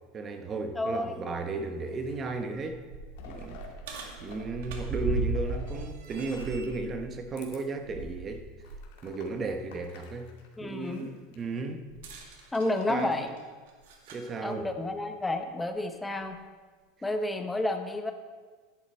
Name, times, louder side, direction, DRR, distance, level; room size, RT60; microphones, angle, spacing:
voice 1, 0.1-2.8 3.2-3.6 4.2-8.5 9.0-10.3 10.6-11.8 12.9-13.1 14.1-14.7, right 3 dB, 20° right, 7 dB, 0.9 m, -34 dB
voice 2, 0.7-1.1 10.6-11.1 12.5-13.3 14.4-16.4 17.0-18.1, left 2 dB, 5° left, 6 dB, 0.7 m, -30 dB
sound 1, 1.8-2.4 2.8-4.4 4.7-6.8 7.3-7.6 8.0-8.2 8.6-11.4 12.2-12.8, left 5 dB, 75° left, 2.1 m, -52 dB
sound 2, 2.8-8.9 9.3-9.5 11.9-14.3 15.3-15.4 16.2-16.3, right 3 dB, 80° right, 1.9 m, -37 dB
11.5 x 10.5 x 4.3 m, 1.4 s
supercardioid pair, 165°, 0 cm